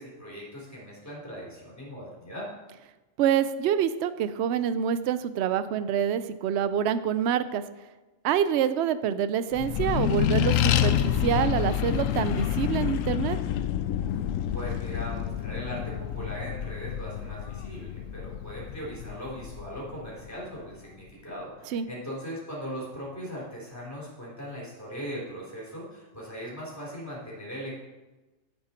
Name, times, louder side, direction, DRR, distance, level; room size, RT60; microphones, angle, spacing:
voice 1, 0.0-2.5 14.5-27.8, equal, 10° left, -6 dB, 3.8 m, -39 dB
voice 2, 3.2-7.6 8.2-13.4 21.7-21.9, right 9 dB, 65° right, 13 dB, 0.8 m, -26 dB
Accelerating revving vroom, 9.5-20.5, left 10 dB, 85° left, 1.0 m, -28 dB
10.5 x 8.9 x 4.4 m, 1.1 s
omnidirectional pair, 1.3 m